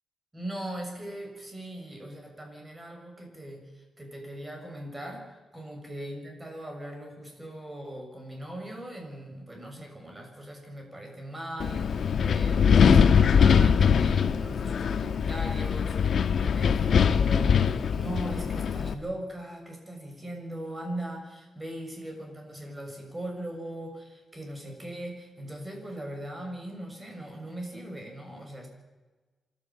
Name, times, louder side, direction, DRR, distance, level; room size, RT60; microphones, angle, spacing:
voice 1, 0.3-28.7, right 1 dB, 20° right, 2 dB, 7.1 m, -40 dB
Wind, 11.6-18.9, left 7 dB, 70° left, 1.2 m, -22 dB
28.0 x 12.5 x 7.8 m, 1.2 s
cardioid pair, 85°, 0 cm